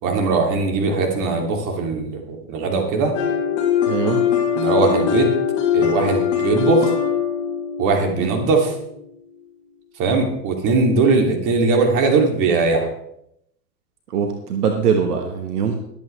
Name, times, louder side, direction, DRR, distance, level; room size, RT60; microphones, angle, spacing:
voice 1, 0.0-3.2 4.6-5.3 5.7-7.0 7.8-8.7 10.0-12.9, right 3 dB, 40° right, 3 dB, 2.8 m, -20 dB
sound 1, 3.1-9.0, left 8 dB, 60° left, 5.8 m, -21 dB
voice 2, 3.9-4.2 8.2-8.3 14.1-15.7, right 6 dB, 65° right, 5 dB, 1.5 m, -22 dB
21.5 x 8.4 x 3.4 m, 0.76 s
hypercardioid pair, 100°, 50 cm